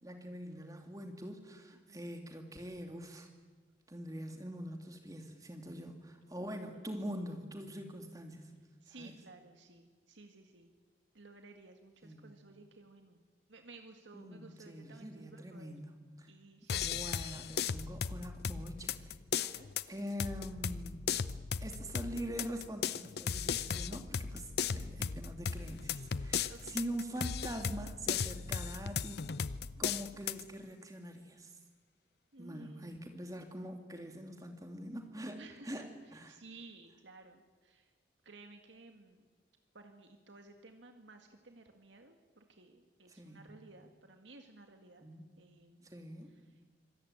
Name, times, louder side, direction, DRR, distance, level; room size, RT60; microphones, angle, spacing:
voice 1, 0.0-3.3 3.9-8.5 8.9-9.2 12.0-12.4 14.1-16.3 16.6-19.1 19.4-19.6 19.9-21.1 21.6-29.3 29.8-31.6 32.4-36.4 43.1-43.6 45.0-45.4 45.8-46.4, equal, 20° right, 5 dB, 2.5 m, -44 dB
voice 2, 1.7-2.1 6.7-7.2 8.8-10.7 11.1-13.2 13.5-15.7 16.3-17.1 19.4-19.7 26.5-26.8 29.6-29.8 32.3-33.2 35.4-37.9 38.2-39.3 39.7-45.1 45.4-45.9, right 3 dB, 90° right, 5 dB, 2.0 m, -56 dB
sound 1, 16.7-30.4, left 6 dB, 60° left, 0.6 m, -37 dB
25.5 x 17.5 x 8.9 m, 1.4 s
head